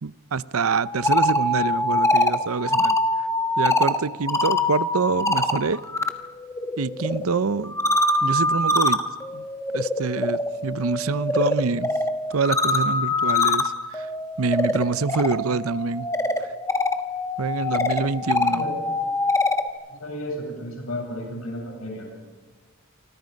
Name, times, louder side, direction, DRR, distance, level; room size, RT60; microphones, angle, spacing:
voice 1, 0.0-3.0 3.6-5.8 6.8-7.8 8.2-9.1 9.3-9.4 9.7-11.9 12.3-14.1 14.4-16.1 16.4-16.5 17.4-18.6, right 4 dB, 75° right, 0.7 m, -26 dB
sound 1, 0.9-6.1 6.4-19.7, left 2 dB, 15° left, 1.4 m, -24 dB
voice 2, 19.9-22.1, left 1 dB, 75° left, 7.7 m, -33 dB
28.5 x 25.0 x 5.3 m
head